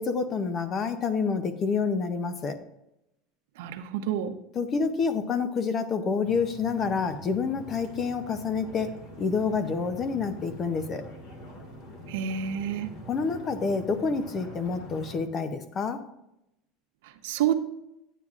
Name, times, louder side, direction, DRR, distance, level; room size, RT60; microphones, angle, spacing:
voice 1, 0.0-2.6 4.5-11.0 13.1-16.0, left 5 dB, 25° left, 10 dB, 0.6 m, -28 dB
voice 2, 3.6-4.3 12.1-12.9 17.2-17.5, right 9 dB, 85° right, 8 dB, 0.8 m, -28 dB
sound 1, 6.2-15.2, right 1 dB, 55° left, 2.1 m, -45 dB
9.4 x 9.1 x 2.4 m, 0.86 s
cardioid pair, 165°, 0 cm